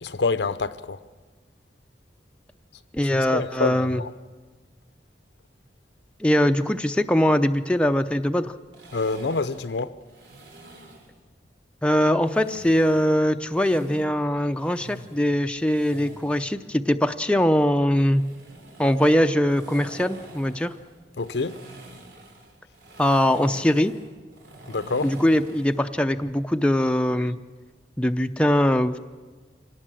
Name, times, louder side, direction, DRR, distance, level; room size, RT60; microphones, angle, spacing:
voice 1, 0.0-1.0 3.1-4.1 8.9-9.9 21.2-21.6 24.7-25.1, left 3 dB, 80° left, 0.8 m, -27 dB
voice 2, 2.9-4.0 6.2-8.5 11.8-18.2 18.8-20.7 23.0-23.9 25.0-27.4 28.0-29.0, equal, 5° left, 0.6 m, -22 dB
sound 1, 8.7-11.1 12.2-14.0 14.5-16.5 17.9-25.8, right 1 dB, 85° right, 3.5 m, -46 dB
26.0 x 18.0 x 7.6 m
head